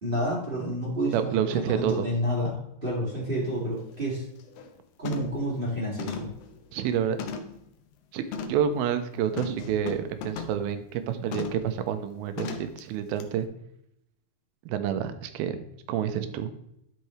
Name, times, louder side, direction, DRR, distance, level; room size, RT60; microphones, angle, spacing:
voice 1, 0.0-4.2 5.0-6.3, equal, 20° right, -5 dB, 1.6 m, -29 dB
voice 2, 1.1-2.1 6.7-7.2 8.1-13.5 14.7-15.6 15.9-16.5, right 9 dB, 85° right, 9 dB, 2.5 m, -28 dB
sound 1, 3.2-3.3 3.8-4.0 4.4-4.7 5.1-5.5 6.0-7.7 8.3-8.7 9.4-10.6 11.3-11.7 12.4-12.8 13.2-13.3, left 5 dB, 75° left, 2.4 m, -37 dB
12.0 x 5.7 x 3.1 m, 0.79 s
omnidirectional pair, 4.4 m